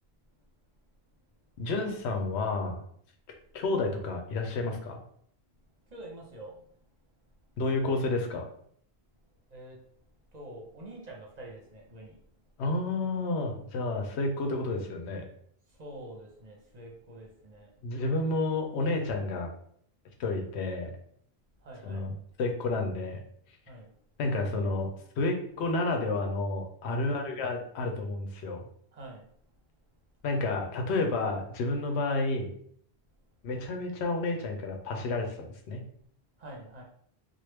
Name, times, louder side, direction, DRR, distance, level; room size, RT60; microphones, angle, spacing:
voice 1, 1.6-2.8 3.5-5.0 7.6-8.4 12.6-15.2 17.8-19.5 20.2-20.9 21.8-23.2 24.2-24.9 25.2-28.6 30.2-32.5 33.4-35.8, left 2 dB, 90° left, 3 dB, 0.9 m, -30 dB
voice 2, 5.9-6.7 9.5-9.8 10.3-12.2 15.7-17.7 21.6-22.1 23.7-23.9 26.9-27.4 28.9-29.2 36.4-36.8, right 1 dB, 45° right, -1 dB, 0.7 m, -46 dB
3.1 x 2.2 x 3.2 m, 0.65 s
omnidirectional pair, 1.1 m